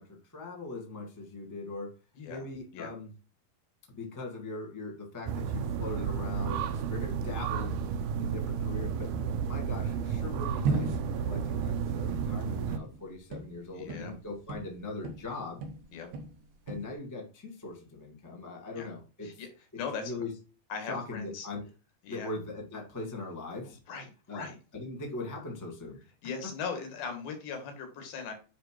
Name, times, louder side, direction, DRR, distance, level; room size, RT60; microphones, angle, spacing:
voice 1, 0.0-2.0 2.3-3.1 3.9-9.1 9.4-15.6 16.7-19.4 19.7-20.4 20.9-21.7 22.1-23.8 24.3-24.5 24.7-26.0, left 3 dB, 20° left, -1 dB, 0.5 m, -40 dB
sound 1, 5.3-12.8, right 7 dB, 85° right, 1.7 m, -32 dB
sound 2, 10.6-15.3 15.6-16.9, right 4 dB, 70° right, 2.3 m, -36 dB
voice 2, 13.7-14.1 15.9-16.1 18.8-18.9 19.2-19.5 19.8-20.1 20.7-21.5 22.0-22.3 23.9-24.6 26.2-28.3, left 5 dB, 70° left, 5 dB, 3.4 m, -39 dB
9.8 x 3.4 x 4.5 m, 0.33 s
omnidirectional pair, 4.3 m